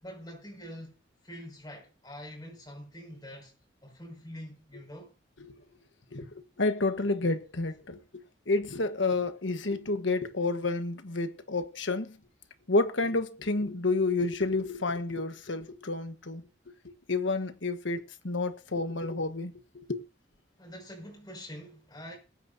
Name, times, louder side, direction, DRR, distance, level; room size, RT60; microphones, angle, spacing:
voice 1, 0.0-3.5 3.8-5.1 20.6-22.2, equal, 20° left, 6.0 m, -45 dB
voice 2, 6.6-12.2 12.7-16.4 17.1-20.0, left 3 dB, 85° left, 1.3 m, -30 dB
21.0 x 9.7 x 2.7 m
head